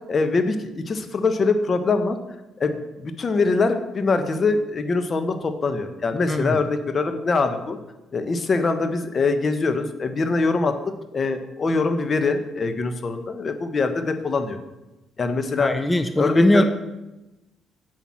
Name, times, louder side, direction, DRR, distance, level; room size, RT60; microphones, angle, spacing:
voice 1, 0.1-2.2 2.6-7.8 8.1-10.7 11.1-14.6 15.2-15.7 16.2-16.6, left 3 dB, 40° left, 8 dB, 1.2 m, -23 dB
voice 2, 6.3-6.6 15.6-16.6, left 1 dB, 15° left, 9 dB, 0.7 m, -20 dB
8.0 x 7.2 x 6.1 m, 1.0 s
supercardioid pair, 70°, 0 cm